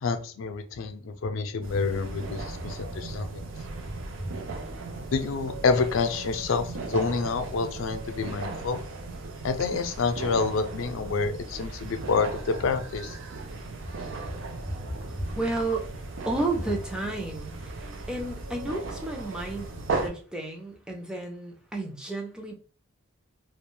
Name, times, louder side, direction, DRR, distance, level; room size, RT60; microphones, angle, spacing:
voice 1, 0.0-3.5 5.1-8.8 9.4-13.2, left 4 dB, 80° left, 8 dB, 0.4 m, -28 dB
sound 1, 1.6-20.1, right 3 dB, 70° right, 0.5 m, -37 dB
voice 2, 14.3-15.9 16.2-22.5, right 2 dB, 5° right, 1 dB, 0.4 m, -32 dB
2.4 x 2.2 x 3.0 m, 0.39 s
head